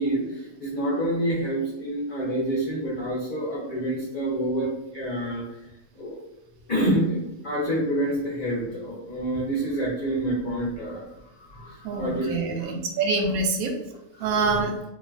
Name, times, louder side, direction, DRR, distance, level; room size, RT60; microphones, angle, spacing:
voice 1, 0.0-5.4 5.9-6.2 6.7-11.0 11.5-12.7 14.1-14.6, right 1 dB, 45° left, -7 dB, 0.6 m, -27 dB
voice 2, 11.8-13.8 14.2-14.8, right 3 dB, 75° right, 3 dB, 1.0 m, -25 dB
3.0 x 2.1 x 2.4 m, 0.91 s
omnidirectional pair, 1.6 m